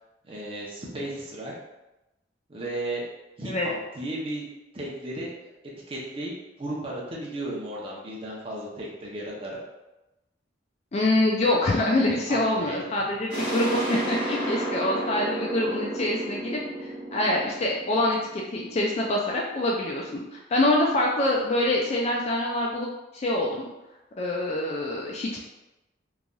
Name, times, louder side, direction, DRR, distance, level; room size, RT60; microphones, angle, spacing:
voice 1, 0.2-1.5 2.5-3.0 3.4-4.4 4.7-5.5 5.9-6.3 6.6-9.6 12.3-12.8, right 1 dB, 30° right, -4 dB, 0.6 m, -34 dB
voice 2, 10.9-16.6 17.1-22.9 23.2-23.7 24.2-25.4, left 1 dB, 35° left, -2 dB, 0.3 m, -25 dB
sound 1, 13.3-18.8, right 1 dB, 60° right, 1.1 m, -31 dB
3.1 x 2.5 x 2.2 m, 0.98 s
head